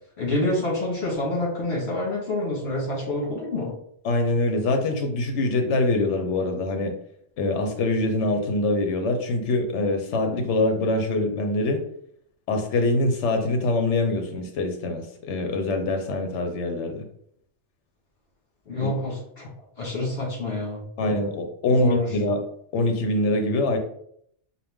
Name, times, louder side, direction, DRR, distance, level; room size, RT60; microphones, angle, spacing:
voice 1, 0.2-3.8 18.7-19.5 19.8-21.1 21.7-22.1, left 2 dB, 65° left, -3 dB, 1.7 m, -27 dB
voice 2, 4.0-6.9 7.4-11.8 12.5-17.1 18.8-18.9 21.0-22.4 22.7-23.8, left 2 dB, 80° left, 5 dB, 1.0 m, -24 dB
4.1 x 2.2 x 3.5 m, 0.68 s
omnidirectional pair, 1.2 m